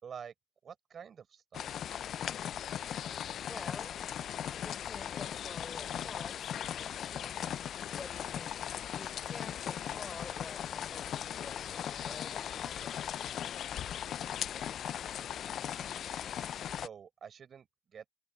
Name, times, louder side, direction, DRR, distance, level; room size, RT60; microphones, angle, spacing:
voice 1, 0.0-0.3 0.6-1.7 16.8-18.1, right 7 dB, 55° right, 4.6 m, -48 dB
sound 1, 1.5-16.9, left 9 dB, 65° left, 0.3 m, -38 dB
voice 2, 3.5-4.0 4.5-7.5 7.9-8.6 8.9-13.5, left 3 dB, 20° left, 5.1 m, -50 dB
cardioid pair, 90°, 0 cm